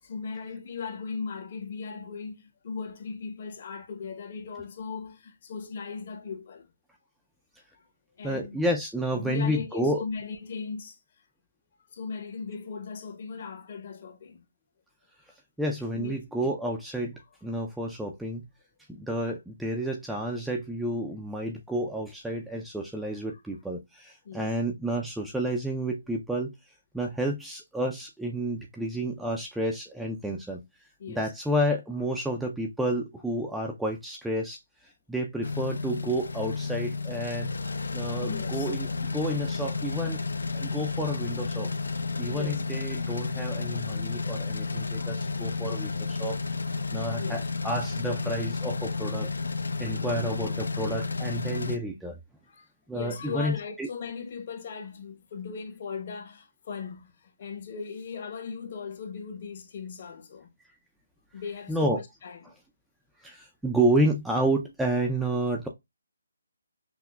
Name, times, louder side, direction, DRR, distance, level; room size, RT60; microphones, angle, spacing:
voice 1, 0.0-6.7 8.2-8.6 9.1-11.0 11.9-14.4 15.9-16.5 23.3-23.4 24.2-24.5 31.0-31.3 38.0-39.0 42.2-42.6 44.9-45.6 47.2-47.5 50.1-50.3 51.3-51.4 52.5-60.5 61.3-62.6, left 5 dB, 40° left, 0.9 m, -38 dB
voice 2, 8.2-10.0 15.6-18.4 18.9-26.5 26.9-30.6 31.1-34.6 35.1-37.5 37.9-40.2 40.5-41.7 42.2-46.4 46.9-49.3 49.8-52.2 52.9-53.9 61.7-62.0 63.2-65.7, right 1 dB, ahead, 0.3 m, -30 dB
sound 1, 35.4-51.8, left 4 dB, 85° left, 0.5 m, -32 dB
5.8 x 2.1 x 2.2 m
hypercardioid pair, 165°, 0 cm